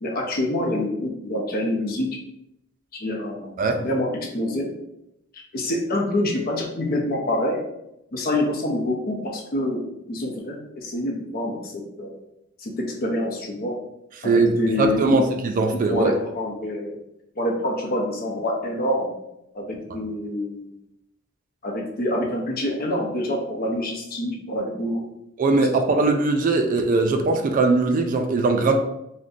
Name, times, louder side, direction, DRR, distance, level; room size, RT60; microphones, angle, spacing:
voice 1, 0.0-2.1 3.0-4.7 5.5-7.6 8.1-9.8 10.1-12.1 12.6-12.7 13.0-13.7 14.2-15.2 15.7-17.0 17.4-19.1 19.5-20.7 21.6-25.0 25.7-25.8, left 1 dB, 45° left, 0 dB, 0.6 m, -26 dB
voice 2, 14.2-16.1 25.4-28.8, right 3 dB, 40° right, 5 dB, 0.3 m, -20 dB
2.6 x 2.2 x 3.7 m, 0.83 s
head